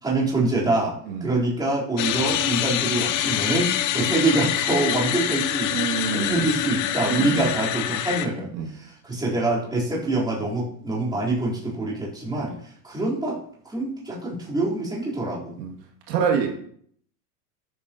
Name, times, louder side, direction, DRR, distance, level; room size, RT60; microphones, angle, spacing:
voice 1, 0.0-1.0 1.2-5.7 6.1-12.5 12.8-13.4 13.6-15.5, right 2 dB, 10° right, -7 dB, 4.0 m, -25 dB
sound 1, 2.0-8.3, left 12 dB, 35° left, 0.9 m, -25 dB
voice 2, 5.7-6.5 7.1-7.5 8.5-8.7 12.4-12.5 15.6-15.7 16.1-16.7, right 6 dB, 80° right, 1 dB, 2.6 m, -26 dB
13.5 x 8.3 x 3.0 m, 0.62 s
supercardioid pair, 140°, 48 cm